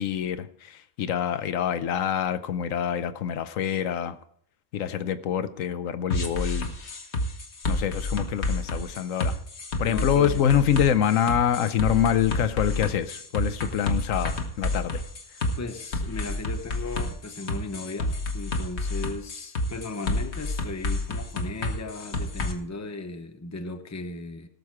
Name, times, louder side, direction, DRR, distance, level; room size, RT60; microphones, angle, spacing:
voice 1, 0.0-4.2 4.7-6.7 7.7-9.3 9.8-15.0, left 9 dB, 80° left, 1.1 m, -25 dB
sound 1, 6.1-22.5, left 2 dB, 55° left, 1.5 m, -29 dB
voice 2, 9.8-10.4 15.6-24.5, left 3 dB, 15° left, 0.7 m, -36 dB
17.0 x 6.8 x 4.7 m
omnidirectional pair, 1.3 m